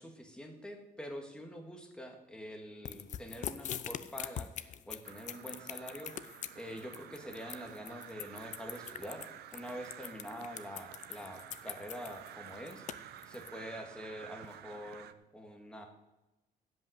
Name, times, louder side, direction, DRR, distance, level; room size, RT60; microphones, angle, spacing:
voice 1, 0.0-6.3 6.6-9.2 9.5-15.9, equal, 5° left, 3 dB, 1.8 m, -46 dB
sound 1, 2.9-13.5, left 10 dB, 50° left, 0.6 m, -43 dB
Crow, 5.0-15.1, right 11 dB, 75° right, 0.7 m, -51 dB
16.0 x 5.5 x 7.9 m, 1.0 s
cardioid pair, 160°, 17 cm